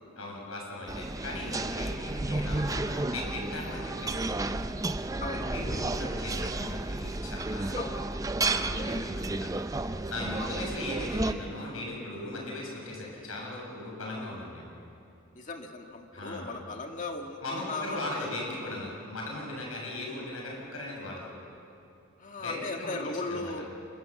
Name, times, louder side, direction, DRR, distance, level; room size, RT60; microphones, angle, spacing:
voice 1, 0.2-4.5 5.3-8.0 8.4-9.5 10.1-14.7 16.1-16.6 17.4-21.3 22.4-23.0 23.2-23.5, left 2 dB, 80° left, -2 dB, 6.9 m, -38 dB
sound 1, 0.9-11.3, right 2 dB, 15° right, 0.5 m, -32 dB
voice 2, 15.4-18.3 22.2-23.7, left 3 dB, 35° left, 3 dB, 1.9 m, -37 dB
26.5 x 22.0 x 7.2 m, 2.6 s
head